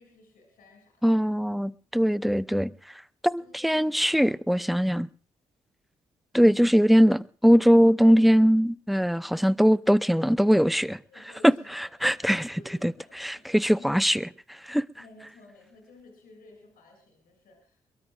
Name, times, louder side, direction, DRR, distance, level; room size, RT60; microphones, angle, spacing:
voice 1, 0.0-1.0 3.4-4.1 11.1-13.4 13.7-14.0 15.0-17.8, left 2 dB, 70° left, 7.9 m, -54 dB
voice 2, 1.0-2.7 3.2-5.1 6.3-11.0 12.0-12.5 12.8-12.9 13.2-14.2 14.7-14.8, equal, ahead, 0.8 m, -21 dB
24.5 x 22.5 x 2.5 m
hypercardioid pair, 40°, 16 cm